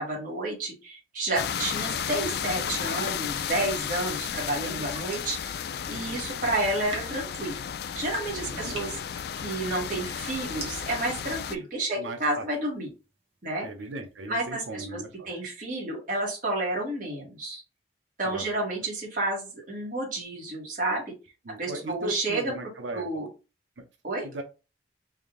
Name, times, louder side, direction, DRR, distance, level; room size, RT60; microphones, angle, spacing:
voice 1, 0.0-7.6 7.9-9.0 9.4-12.9 13.4-13.7 14.3-17.6 18.2-21.1 21.6-23.3 24.0-24.2, right 2 dB, 45° right, 1.5 m, -31 dB
sound 1, 1.3-11.5, left 8 dB, 55° left, 0.3 m, -33 dB
sound 2, 4.6-5.4 6.5-14.2, right 2 dB, 30° right, 1.0 m, -44 dB
voice 2, 5.9-6.3 8.5-8.8 12.0-12.5 13.6-15.3 18.2-18.5 21.4-23.1 23.8-23.9 24.2-24.4, right 1 dB, 90° right, 0.7 m, -38 dB
3.6 x 2.6 x 3.7 m
head